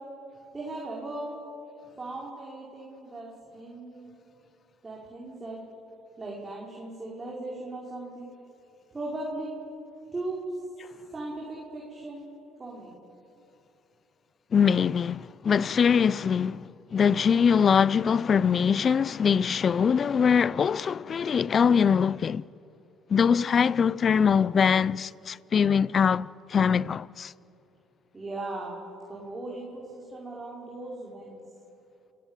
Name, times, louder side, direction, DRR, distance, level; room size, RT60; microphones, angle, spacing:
voice 1, 0.5-1.4 2.0-3.3 3.5-4.1 4.8-5.6 6.2-8.3 8.9-9.5 10.1-10.4 11.1-12.3 12.6-13.0 28.1-28.8 29.1-31.4, right 2 dB, 20° right, 5.6 m, -38 dB
voice 2, 14.5-22.5 23.1-27.3, left 7 dB, 40° left, 0.5 m, -23 dB
29.0 x 16.5 x 9.2 m
supercardioid pair, 90°, 0 cm